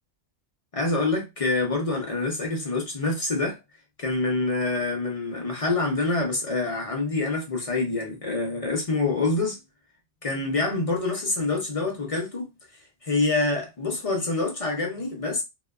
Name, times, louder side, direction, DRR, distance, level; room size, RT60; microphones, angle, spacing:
voice 1, 0.7-3.6 4.0-9.6 10.2-12.5 13.0-15.4, left 3 dB, 40° left, 0.5 m, -26 dB
2.8 x 2.2 x 2.3 m
omnidirectional pair, 1.3 m